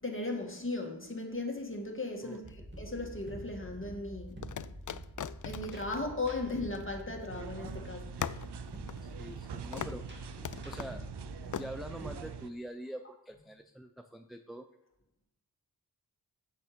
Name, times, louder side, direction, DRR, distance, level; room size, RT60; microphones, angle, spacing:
voice 1, 0.0-4.6 5.4-8.3, left 2 dB, 30° left, 2.3 m, -37 dB
sound 1, 2.3-3.2 4.4-7.4 7.7-7.8 8.2-9.5 9.7-10.1 10.4-11.0 11.5-11.7, left 9 dB, 50° left, 0.4 m, -41 dB
sound 2, 2.4-12.2, right 1 dB, 25° right, 2.1 m, -46 dB
sound 3, 7.3-12.5, right 9 dB, 80° right, 0.7 m, -45 dB
voice 2, 9.2-10.1 10.6-11.1 11.5-14.7, right 1 dB, ahead, 0.6 m, -44 dB
8.9 x 8.3 x 5.3 m
cardioid pair, 45°, 40 cm